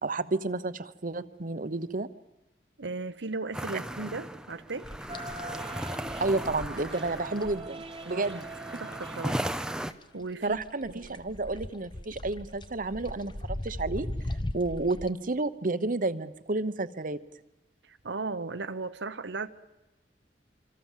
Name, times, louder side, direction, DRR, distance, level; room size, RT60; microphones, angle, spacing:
voice 1, 0.0-2.1 6.2-8.4 8.7-8.8 10.4-14.1 14.5-17.2, right 2 dB, 50° right, 1.0 m, -31 dB
voice 2, 2.8-4.9 8.1-8.3 8.8-9.4 10.1-10.6 11.0-11.1 17.9-19.5, right 3 dB, 85° right, 1.0 m, -36 dB
sound 1, 3.5-9.9, right 1 dB, 5° right, 0.8 m, -37 dB
sound 2, 4.8-9.7 9.9-15.1, left 1 dB, 25° left, 1.0 m, -39 dB
sound 3, 5.1-9.9, right 3 dB, 30° right, 1.5 m, -43 dB
26.0 x 25.5 x 7.5 m
head